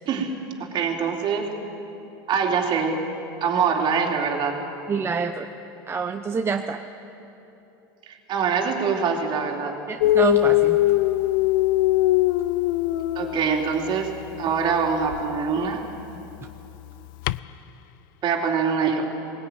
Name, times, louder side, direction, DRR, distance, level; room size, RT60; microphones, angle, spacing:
voice 1, 0.6-1.6 2.3-3.1 3.4-4.6 8.1-9.8 13.1-15.9 18.2-19.1, right 6 dB, 45° right, 2 dB, 3.2 m, -24 dB
voice 2, 4.9-5.5 5.9-6.8 9.9-10.8, right 5 dB, 20° right, 6 dB, 0.8 m, -26 dB
Dog, 10.0-14.0 15.0-15.2 17.2-17.4, left 16 dB, 70° left, 0.5 m, -21 dB
20.5 x 17.0 x 9.4 m, 3.0 s
supercardioid pair, 105°, 11 cm